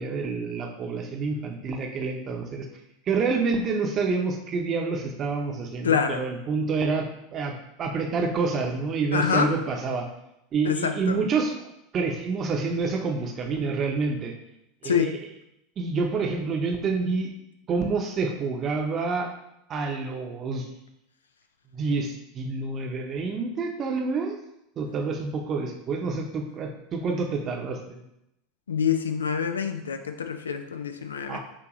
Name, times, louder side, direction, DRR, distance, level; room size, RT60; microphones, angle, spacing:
voice 1, 0.0-2.7 3.1-10.1 10.5-11.5 11.9-14.3 14.8-15.2 15.8-17.3 17.7-19.3 19.7-20.7 21.7-24.3 24.8-28.0 31.3-31.4, right 4 dB, 35° right, 3 dB, 0.8 m, -28 dB
voice 2, 5.8-6.2 9.1-9.5 10.6-11.2 14.8-15.1 28.7-31.4, left 7 dB, 80° left, 7 dB, 0.4 m, -26 dB
6.2 x 2.8 x 3.0 m, 0.82 s
figure-of-eight pair, 80°, 0 cm